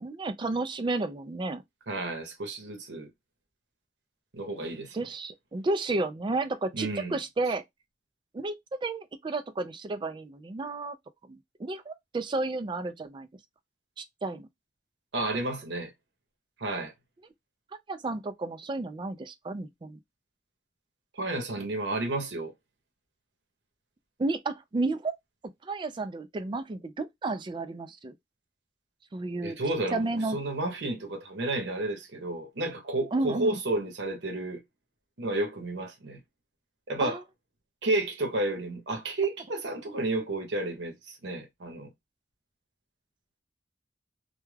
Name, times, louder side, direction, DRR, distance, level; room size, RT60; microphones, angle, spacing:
voice 1, 0.0-1.6 4.9-7.6 8.3-11.0 11.3-13.3 14.0-14.5 17.9-20.0 24.2-25.1 25.6-28.1 29.1-29.6 29.9-30.4 33.1-33.6 37.0-37.2, right 2 dB, 25° right, 0.3 m, -32 dB
voice 2, 1.9-3.1 4.3-5.0 6.7-7.2 15.1-15.9 16.6-16.9 21.1-22.5 29.4-34.6 35.2-36.2 36.9-37.2 37.8-41.9, right 2 dB, 80° right, 0.8 m, -31 dB
2.3 x 2.2 x 3.1 m
head